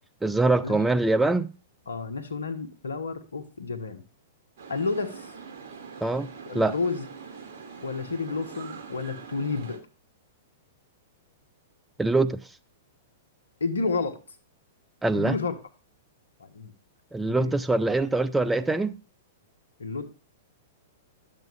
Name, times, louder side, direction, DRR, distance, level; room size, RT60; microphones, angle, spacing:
voice 1, 0.2-1.5 6.0-6.3 6.5-6.7 12.0-12.4 15.0-15.4 17.1-18.9, right 2 dB, 5° right, 0.5 m, -23 dB
voice 2, 1.9-4.0 4.7-5.3 6.5-7.0 7.8-9.8 13.6-14.2 15.1-15.5 16.4-16.7 17.3-17.6 19.8-20.1, left 4 dB, 80° left, 1.3 m, -30 dB
sound 1, 4.6-9.8, right 6 dB, 45° right, 2.8 m, -43 dB
10.5 x 7.4 x 3.4 m
figure-of-eight pair, 105°, 0 cm